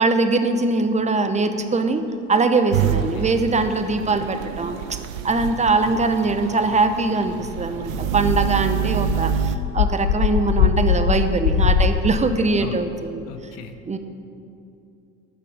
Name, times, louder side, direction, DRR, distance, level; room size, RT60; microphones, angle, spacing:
voice 1, 0.0-2.0 2.3-5.0 5.2-13.3 13.9-14.0, right 3 dB, 15° right, 8 dB, 0.9 m, -22 dB
sound 1, 2.7-9.6, right 9 dB, 85° right, 0.6 m, -27 dB
sound 2, 7.2-12.0, left 8 dB, 80° left, 0.8 m, -22 dB
voice 2, 13.3-13.8, left 10 dB, 65° left, 8 dB, 1.1 m, -38 dB
11.0 x 5.8 x 7.3 m, 2.7 s
hypercardioid pair, 75°, 40 cm